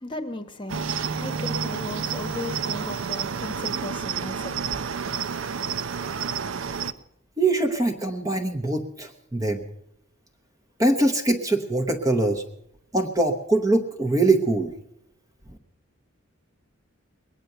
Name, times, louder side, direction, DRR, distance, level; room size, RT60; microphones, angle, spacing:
voice 1, 0.0-4.8, left 2 dB, 20° left, 7 dB, 1.1 m, -36 dB
Cricket, 0.7-6.9, right 6 dB, 65° right, 0.6 m, -30 dB
voice 2, 7.4-9.6 10.8-12.4 12.9-14.7, right 2 dB, 15° right, 5 dB, 0.8 m, -23 dB
21.0 x 9.3 x 6.6 m, 0.80 s
head